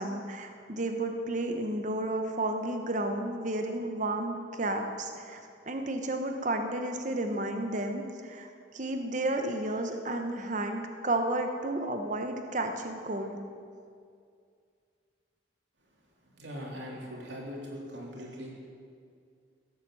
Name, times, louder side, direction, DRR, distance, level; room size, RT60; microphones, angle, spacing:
voice 1, 0.0-8.5 8.7-13.4, right 1 dB, 40° right, 5 dB, 1.0 m, -32 dB
voice 2, 16.2-18.5, equal, 75° right, -2 dB, 3.3 m, -41 dB
16.5 x 8.1 x 7.6 m, 2.3 s
head